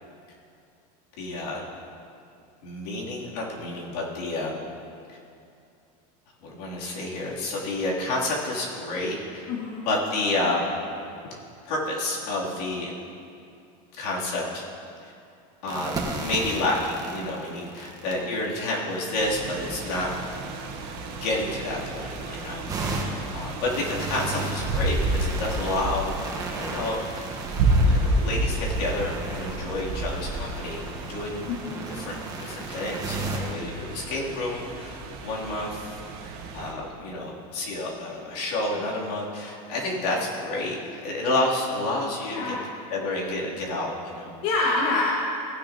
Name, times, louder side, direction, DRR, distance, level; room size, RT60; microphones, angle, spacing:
voice 1, 1.2-1.6 2.6-4.6 6.4-9.5 9.9-10.7 11.2-11.3 11.6-12.9 13.9-14.6 15.0-15.1 15.6-15.9 16.2-20.1 21.1-27.0 27.9-31.5 31.9-42.5 42.9-44.3, left 2 dB, 85° left, -4 dB, 2.9 m, -30 dB
voice 2, 9.5-9.9 31.5-31.9 42.2-42.6 44.4-45.0, left 3 dB, 65° left, -4 dB, 1.6 m, -26 dB
sound 1, 15.7-33.5, right 3 dB, 20° right, 1.4 m, -35 dB
sound 2, 19.1-36.7, right 1 dB, 55° right, 1.6 m, -30 dB
17.0 x 9.8 x 2.9 m, 2.5 s
supercardioid pair, 150°, 20 cm